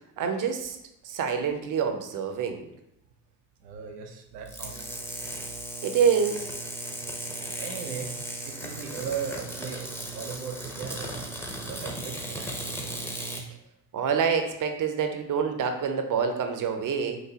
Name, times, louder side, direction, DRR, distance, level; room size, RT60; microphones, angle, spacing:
voice 1, 0.2-0.8 1.0-2.7 5.8-6.4 13.9-17.2, right 6 dB, 45° right, 6 dB, 0.7 m, -26 dB
voice 2, 3.6-5.3 7.6-8.1 8.4-11.2 11.7-12.9, right 7 dB, 85° right, 3 dB, 0.7 m, -38 dB
sound 1, 4.5-13.4, right 1 dB, 5° left, 0.8 m, -36 dB
5.9 x 2.6 x 2.8 m, 0.82 s
hypercardioid pair, 50°, 47 cm